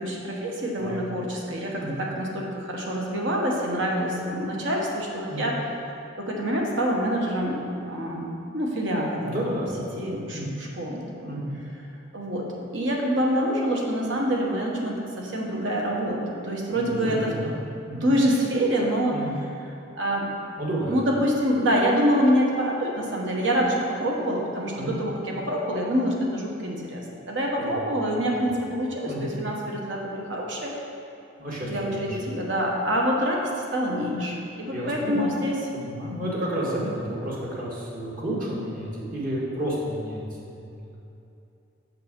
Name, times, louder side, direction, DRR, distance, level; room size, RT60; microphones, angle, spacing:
voice 1, 0.0-5.5 6.2-8.3 8.5-9.3 10.0-11.4 12.1-12.5 12.7-17.3 18.0-19.2 20.0-20.3 20.9-30.7 31.7-35.5, equal, 65° right, -1 dB, 1.2 m, -26 dB
voice 2, 9.2-10.5 11.3-11.5 16.7-17.5 17.9-18.1 19.1-19.3 20.6-21.0 24.7-24.9 27.6-27.8 29.1-29.3 31.4-32.2 34.7-35.4 35.7-41.0, right 1 dB, 45° right, -5 dB, 1.7 m, -31 dB
6.6 x 6.3 x 5.2 m, 2.8 s
head